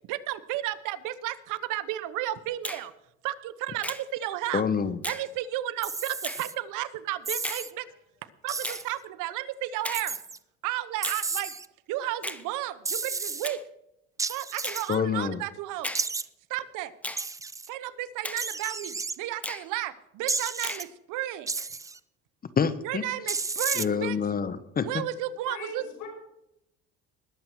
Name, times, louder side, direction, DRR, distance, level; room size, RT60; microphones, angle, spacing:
voice 1, 0.1-2.9 3.2-4.6 5.0-7.9 8.4-10.2 10.6-11.5 11.9-13.6 14.3-16.0 16.5-16.9 17.7-21.7 22.8-24.2 24.8-25.8, right 14 dB, 80° right, 14 dB, 1.0 m, -33 dB
Finger snapping, 2.6-2.9 3.8-4.1 5.0-5.3 6.2-6.4 7.4-7.7 8.6-8.9 9.8-10.1 11.0-11.2 12.2-12.4 13.4-13.6 14.6-14.9 15.8-16.1 17.0-17.3 18.2-18.5 19.4-19.7 20.6-20.9, left 1 dB, 5° left, 0.9 m, -35 dB
voice 2, 4.5-5.0 14.9-15.4 22.6-23.1 23.7-25.1, left 6 dB, 30° left, 14 dB, 0.9 m, -27 dB
sound 1, 5.8-6.5 7.3-7.7 8.5-8.9 9.9-10.4 11.0-11.7 12.9-13.5 14.2-14.9 15.9-16.3 17.2-17.7 18.4-19.2 20.3-20.8 21.5-22.0 23.3-23.9, right 4 dB, 10° right, 0.3 m, -32 dB
voice 3, 7.9-8.6 25.4-26.1, left 4 dB, 70° left, 1 dB, 5.8 m, -43 dB
20.5 x 7.6 x 4.6 m, 0.83 s
cardioid pair, 115°, 31 cm